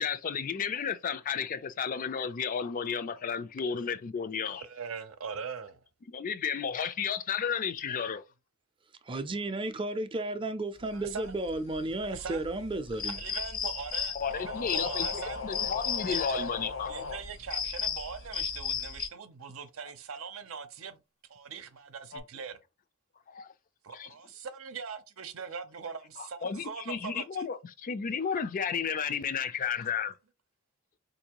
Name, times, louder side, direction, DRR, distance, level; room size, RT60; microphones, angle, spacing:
voice 1, 0.0-4.6 6.1-8.2 14.2-16.9 23.3-23.5 23.9-24.1 26.2-30.1, left 6 dB, 40° left, 0.4 m, -33 dB
voice 2, 4.5-5.8 10.9-11.3 12.1-12.4 13.1-15.4 16.1-16.5 16.9-21.0 21.3-22.6 23.8-27.5, right 6 dB, 80° right, 0.6 m, -41 dB
voice 3, 9.0-13.2, right 2 dB, 25° right, 0.5 m, -33 dB
sound 1, 11.0-19.1, left 7 dB, 90° left, 1.3 m, -35 dB
sound 2, 14.2-17.2 22.1-22.2, left 5 dB, 75° left, 0.9 m, -38 dB
4.3 x 2.6 x 2.9 m
head